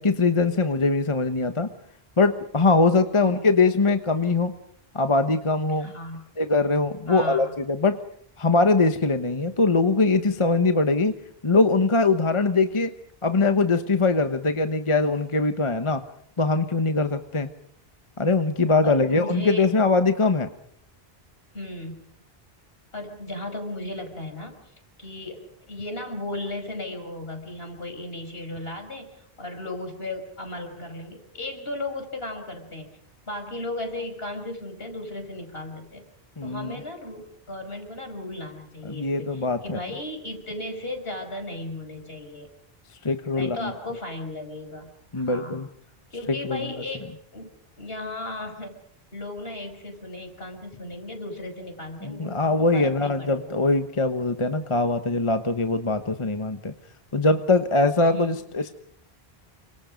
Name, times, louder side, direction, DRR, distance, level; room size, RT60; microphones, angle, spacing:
voice 1, 0.0-1.7 2.2-4.5 4.9-5.9 6.4-8.0 8.4-11.1 11.4-12.9 13.2-16.0 16.4-17.5 18.2-20.5 36.4-36.7 38.8-39.8 43.0-43.7 45.1-45.7 46.3-46.7 52.0-56.7 57.1-58.7, left 3 dB, 30° left, 8 dB, 1.2 m, -22 dB
voice 2, 5.8-6.2 7.1-7.5 18.8-19.7 21.5-22.1 22.9-32.9 33.3-36.0 36.4-42.5 43.3-45.7 46.1-47.5 47.8-48.8 49.1-53.6 58.0-58.4, left 2 dB, 70° left, 5 dB, 5.9 m, -36 dB
29.5 x 25.5 x 5.3 m, 0.64 s
omnidirectional pair, 1.0 m